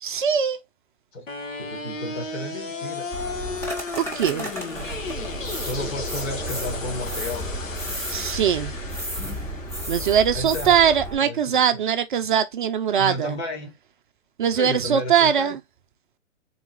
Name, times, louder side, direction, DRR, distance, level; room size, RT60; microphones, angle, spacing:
voice 1, 0.0-0.6 4.0-4.5 8.1-8.7 9.9-13.4 14.4-15.6, right 8 dB, 40° right, 0.4 m, -21 dB
sound 1, 1.3-11.3, left 3 dB, 80° left, 1.4 m, -35 dB
voice 2, 1.6-3.1 5.6-7.5 10.3-10.8 11.2-11.8 13.0-13.7 14.6-15.6, left 1 dB, 55° left, 2.0 m, -33 dB
sound 2, 3.1-11.1, right 1 dB, 5° left, 1.0 m, -33 dB
3.8 x 2.3 x 4.4 m
hypercardioid pair, 130°, 39 cm